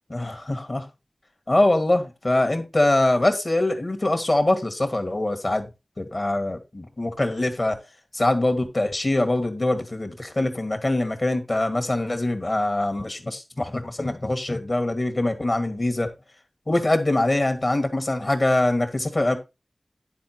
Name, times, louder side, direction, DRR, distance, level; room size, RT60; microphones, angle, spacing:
voice 1, 0.1-0.9 1.5-5.7 6.0-7.8 8.1-16.1 16.7-19.4, left 1 dB, 45° left, 1.9 m, -23 dB
10.5 x 5.1 x 4.6 m
wide cardioid pair, 75°, 0 cm